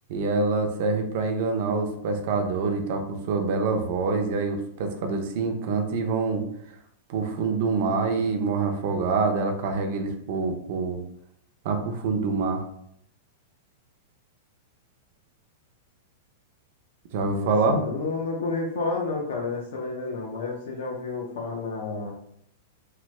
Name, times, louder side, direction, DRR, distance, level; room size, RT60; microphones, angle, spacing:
voice 1, 0.1-6.4 7.1-11.0 11.6-12.6 17.1-17.8, right 4 dB, 40° right, 4 dB, 0.5 m, -26 dB
voice 2, 17.3-22.1, left 3 dB, 75° left, -2 dB, 0.6 m, -30 dB
3.2 x 2.1 x 3.0 m, 0.71 s
supercardioid pair, 175°, 0 cm